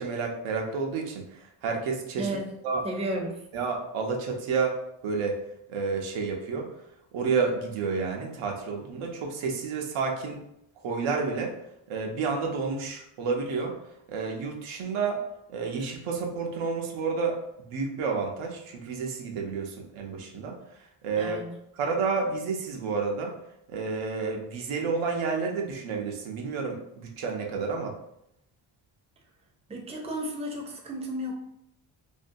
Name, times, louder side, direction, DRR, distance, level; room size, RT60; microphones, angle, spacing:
voice 1, 0.0-2.3 2.6-2.9 3.5-4.8 5.0-5.4 5.7-6.7 7.1-10.4 10.8-11.5 11.9-13.7 14.1-15.2 15.5-17.4 17.7-20.6 21.0-21.4 21.8-23.3 23.7-27.9, right 4 dB, 80° right, 1 dB, 0.7 m, -30 dB
voice 2, 2.2-2.5 2.8-3.4 21.2-21.5 29.7-31.3, right 1 dB, 15° right, 1 dB, 0.5 m, -33 dB
2.6 x 2.1 x 2.5 m, 0.78 s
cardioid pair, 70°, 48 cm